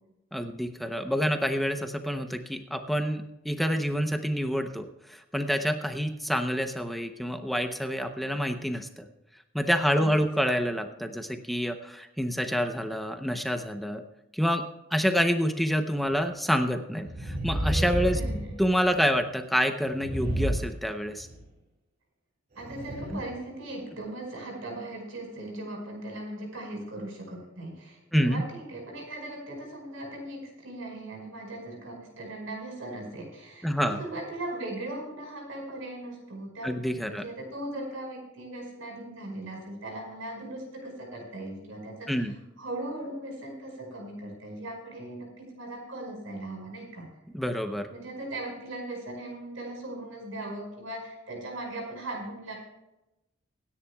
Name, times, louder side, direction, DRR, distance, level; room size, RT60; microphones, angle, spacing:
voice 1, 0.3-9.1 9.5-14.0 14.3-14.7 14.9-18.2 18.6-21.3 23.1-23.2 28.1-28.4 33.6-34.0 36.6-37.2 42.1-42.3 47.3-47.9, equal, ahead, 6 dB, 0.7 m, -27 dB
voice 2, 9.9-10.2 18.1-18.5 22.6-36.7 37.0-47.1 47.9-52.5, right 1 dB, 80° right, 1 dB, 5.3 m, -39 dB
sound 1, 16.1-16.2 17.0-19.2 19.9-21.4 22.6-23.4 23.9-24.0, right 1 dB, 50° right, 2.3 m, -31 dB
25.0 x 10.0 x 2.3 m, 0.94 s
head